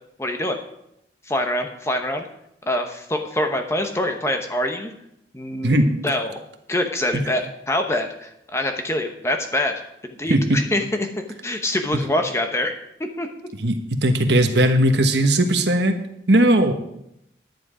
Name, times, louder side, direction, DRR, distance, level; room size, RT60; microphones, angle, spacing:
voice 1, 0.2-0.6 1.3-2.3 2.7-4.9 5.3-6.4 6.7-9.7 10.2-12.7 13.0-13.3, left 1 dB, 15° left, 5 dB, 1.0 m, -25 dB
voice 2, 14.0-16.0 16.3-16.7, right 1 dB, 75° right, 5 dB, 1.2 m, -18 dB
10.5 x 9.9 x 4.9 m, 0.80 s
head